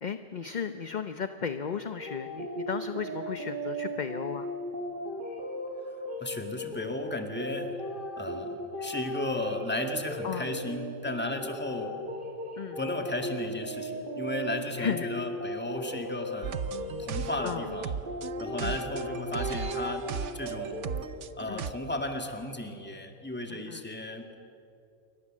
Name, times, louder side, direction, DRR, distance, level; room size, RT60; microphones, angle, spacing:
voice 1, 0.0-4.5 10.2-10.5 12.6-12.8 14.8-15.2 17.4-17.7 18.6-18.8 21.5-21.7 23.5-23.9, left 6 dB, 40° left, 9 dB, 0.8 m, -35 dB
sound 1, 1.9-20.9, equal, 40° right, 2.7 m, -37 dB
voice 2, 6.2-7.8 8.2-12.0 12.8-16.6 17.0-18.0 18.4-20.9 21.4-24.4, left 2 dB, 10° left, 4 dB, 2.0 m, -35 dB
sound 2, 16.4-21.7, right 7 dB, 65° right, 1.1 m, -36 dB
28.0 x 23.5 x 7.5 m, 2.6 s
omnidirectional pair, 1.4 m